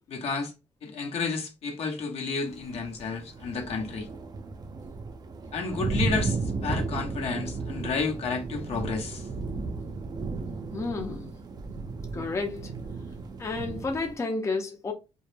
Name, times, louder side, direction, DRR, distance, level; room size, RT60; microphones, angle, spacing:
voice 1, 0.1-0.5 0.8-4.1 5.5-9.3, left 4 dB, 65° left, 0.8 m, -31 dB
sound 1, 2.5-14.1, right 3 dB, 35° right, 0.4 m, -34 dB
voice 2, 10.7-11.3 12.1-12.7 13.4-14.9, left 3 dB, 25° left, 0.5 m, -31 dB
2.2 x 2.0 x 3.2 m
cardioid pair, 85°, 11 cm